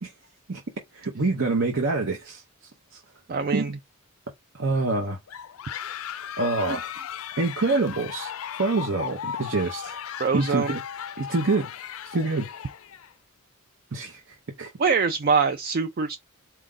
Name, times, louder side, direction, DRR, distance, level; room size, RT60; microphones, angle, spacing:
voice 1, 0.9-2.4 2.9-3.0 3.5-3.7 4.5-5.2 6.4-6.9 7.4-8.3 8.6-10.0 10.3-10.8 11.2-11.7 12.1-12.5 13.9-14.7, right 3 dB, 60° right, 0.8 m, -26 dB
voice 2, 3.3-3.8 6.7-6.8 10.2-10.8 14.8-16.2, right 5 dB, 45° right, 0.4 m, -24 dB
sound 1, 5.3-13.1, left 9 dB, 75° left, 0.4 m, -36 dB
4.4 x 2.5 x 3.7 m
head